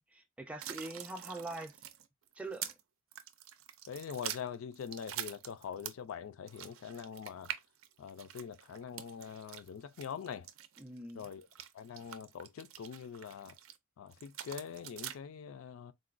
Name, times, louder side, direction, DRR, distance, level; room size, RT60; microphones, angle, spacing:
voice 1, 0.0-1.8 2.4-2.7 10.8-11.3, right 2 dB, 5° right, 0.4 m, -43 dB
sound 1, 0.6-2.8 3.1-6.1 6.5-13.8 14.1-15.2, right 11 dB, 85° right, 0.4 m, -45 dB
voice 2, 3.9-7.5 8.0-10.5 11.2-11.5 11.7-13.5 14.0-15.9, left 7 dB, 85° left, 0.4 m, -44 dB
3.8 x 2.2 x 2.4 m
head